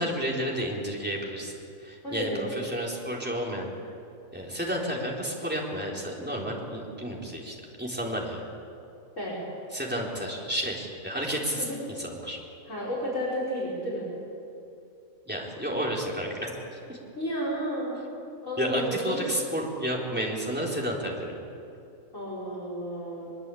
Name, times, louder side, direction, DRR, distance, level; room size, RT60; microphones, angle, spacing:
voice 1, 0.0-1.5 1.8-3.7 4.3-8.5 9.7-11.7 12.0-12.4 15.3-17.0 18.6-21.4, equal, 5° right, -3 dB, 4.0 m, -31 dB
voice 2, 2.0-2.6 9.2-9.4 11.6-11.9 12.6-14.1 17.2-18.0 18.4-19.3 22.1-23.3, equal, 60° left, -6 dB, 6.0 m, -32 dB
22.5 x 22.5 x 8.6 m, 2.6 s
omnidirectional pair, 1.5 m